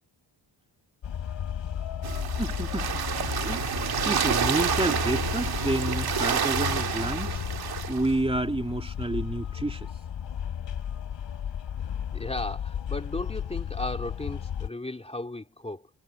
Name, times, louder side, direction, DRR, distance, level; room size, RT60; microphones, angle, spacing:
sound 1, 1.0-14.7, left 9 dB, 75° left, 3.2 m, -34 dB
sound 2, 2.0-8.1, right 7 dB, 55° right, 2.2 m, -29 dB
voice 1, 2.4-7.4 7.9-9.9, right 2 dB, 10° right, 3.0 m, -30 dB
voice 2, 12.1-15.9, left 2 dB, 15° left, 2.8 m, -35 dB
wide cardioid pair, 145°, 45 cm